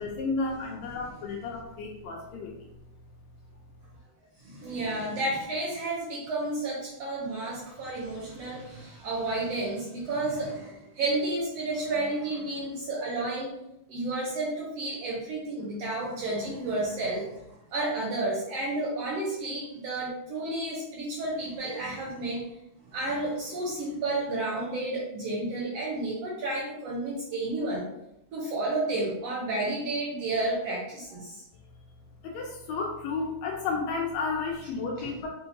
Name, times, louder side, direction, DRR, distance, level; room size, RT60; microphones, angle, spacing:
voice 1, 0.0-2.5 32.2-35.3, left 4 dB, 80° left, 0 dB, 1.7 m, -32 dB
voice 2, 4.4-13.5 13.9-17.4 17.7-22.5 22.9-27.9 28.3-31.4 35.0-35.1, right 2 dB, 75° right, -4 dB, 1.5 m, -31 dB
5.7 x 2.7 x 2.8 m, 0.83 s
omnidirectional pair, 3.5 m